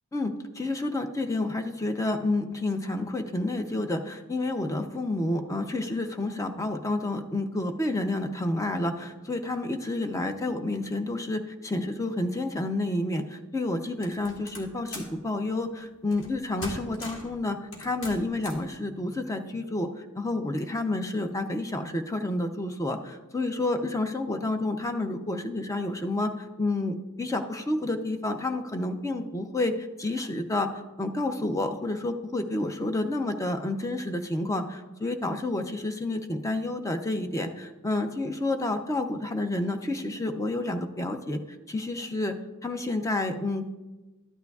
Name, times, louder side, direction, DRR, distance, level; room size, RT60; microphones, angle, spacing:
voice 1, 0.1-41.4 41.7-42.4 42.6-43.6, left 2 dB, 15° left, 6 dB, 0.5 m, -30 dB
sound 1, 14.0-15.2 16.1-16.3 16.6-17.3 17.7-18.7, left 1 dB, 60° left, 1.7 m, -40 dB
12.5 x 9.2 x 2.3 m, 1.2 s
head